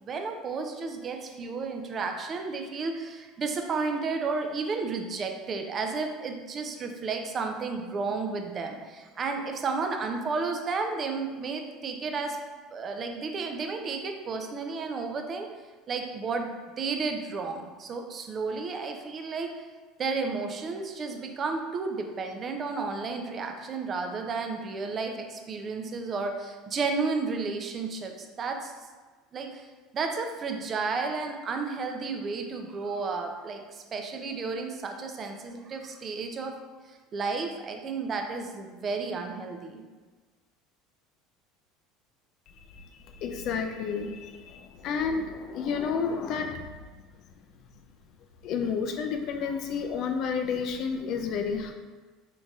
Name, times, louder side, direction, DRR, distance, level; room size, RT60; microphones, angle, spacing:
voice 1, 0.0-12.4 12.7-15.5 15.9-16.5 16.8-19.7 20.0-28.7 29.3-29.7 29.9-36.6 36.8-39.8, right 4 dB, 40° right, 4 dB, 0.5 m, -32 dB
voice 2, 42.7-46.6 48.4-51.7, left 5 dB, 60° left, 5 dB, 0.3 m, -31 dB
3.9 x 3.8 x 2.4 m, 1.3 s
hypercardioid pair, 85°, 0 cm